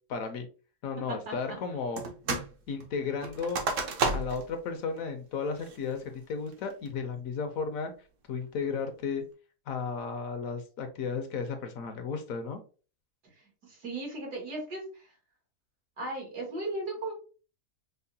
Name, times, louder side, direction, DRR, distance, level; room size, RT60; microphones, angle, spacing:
voice 1, 0.1-0.5 0.8-2.0 2.7-3.6 4.1-7.9 8.3-9.2 9.7-12.6, left 5 dB, 70° left, 7 dB, 0.9 m, -34 dB
sound 1, 2.0-2.5 2.8-4.5 5.0-5.1 5.6-6.0 6.5-6.9, right 3 dB, 60° right, 1.0 m, -32 dB
voice 2, 13.4-15.1 16.0-17.1, right 2 dB, 85° right, -1 dB, 2.1 m, -36 dB
5.4 x 2.1 x 2.6 m, 0.37 s
omnidirectional pair, 1.6 m